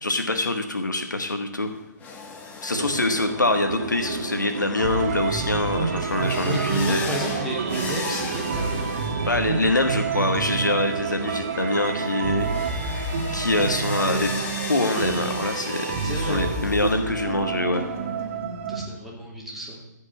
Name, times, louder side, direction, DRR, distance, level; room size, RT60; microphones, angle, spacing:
voice 1, 0.0-1.7 2.6-7.0 9.3-12.5 12.8-14.3 14.7-17.8, left 2 dB, 80° left, 6 dB, 1.4 m, -25 dB
sound 1, 1.7-18.4, left 3 dB, 15° left, 1.4 m, -38 dB
sound 2, 2.7-12.7, right 4 dB, 65° right, 1.9 m, -34 dB
sound 3, 4.8-18.9, right 5 dB, 40° right, 1.5 m, -29 dB
voice 2, 6.4-8.9 16.0-16.4 18.7-19.8, right 1 dB, ahead, -5 dB, 2.9 m, -32 dB
15.0 x 5.4 x 8.4 m, 1.0 s
figure-of-eight pair, 130°, 10 cm